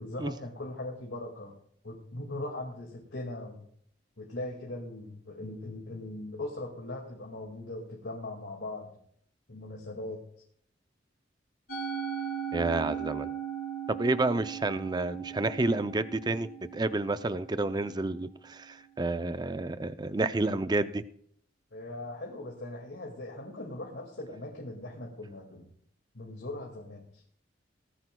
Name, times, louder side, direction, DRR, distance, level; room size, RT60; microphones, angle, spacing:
voice 1, 0.0-1.5 1.8-3.7 4.2-8.9 9.5-10.2 21.7-25.7 26.1-27.3, left 2 dB, 75° left, -1 dB, 2.1 m, -40 dB
Musical instrument, 11.7-18.1, right 8 dB, 55° left, 1.9 m, -38 dB
voice 2, 12.5-13.3 13.9-21.0, right 2 dB, 25° right, 12 dB, 0.5 m, -30 dB
18.0 x 14.5 x 2.3 m, 0.63 s
head